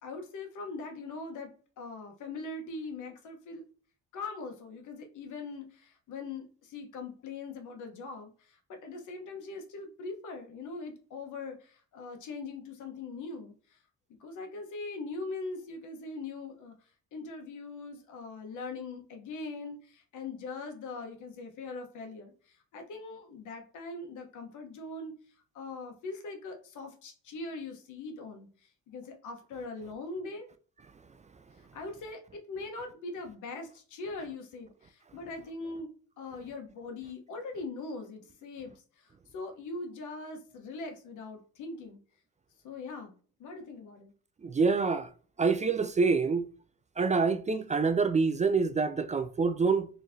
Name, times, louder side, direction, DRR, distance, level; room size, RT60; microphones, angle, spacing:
voice 1, 0.0-1.5 1.8-3.6 4.1-13.8 14.2-16.7 17.1-25.1 25.5-28.5 28.9-30.5 31.7-35.9 36.2-42.0 42.6-43.1 43.4-44.1, left 3 dB, 80° left, 1.1 m, -41 dB
voice 2, 44.4-45.1 45.4-46.5 47.0-49.9, right 4 dB, 25° right, 0.4 m, -26 dB
4.3 x 3.1 x 2.7 m
cardioid pair, 90°, 30 cm